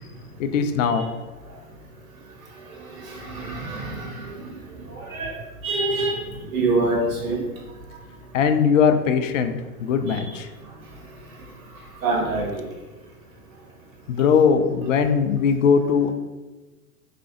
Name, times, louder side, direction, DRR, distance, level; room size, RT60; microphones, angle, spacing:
voice 1, 0.4-1.1 8.3-9.5 9.8-10.5 14.1-16.1, left 6 dB, 55° left, 7 dB, 0.5 m, -20 dB
voice 2, 3.0-4.5 4.9-5.4 5.6-6.2 6.5-7.4 10.1-10.3 12.0-12.7, right 2 dB, 60° right, -2 dB, 1.4 m, -26 dB
3.7 x 3.2 x 2.9 m, 1.2 s
figure-of-eight pair, 100°, 46 cm